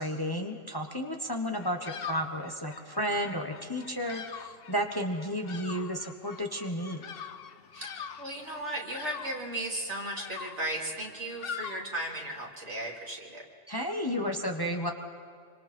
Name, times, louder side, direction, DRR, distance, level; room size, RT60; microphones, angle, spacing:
voice 1, 0.0-7.1 13.7-14.9, equal, 20° left, 3 dB, 1.3 m, -32 dB
Bird vocalization bird call bird song, 1.5-12.5, left 7 dB, 55° left, 0.9 m, -44 dB
voice 2, 7.7-13.4, right 1 dB, 65° right, -1 dB, 3.6 m, -36 dB
27.0 x 25.5 x 4.5 m, 2.3 s
omnidirectional pair, 1.3 m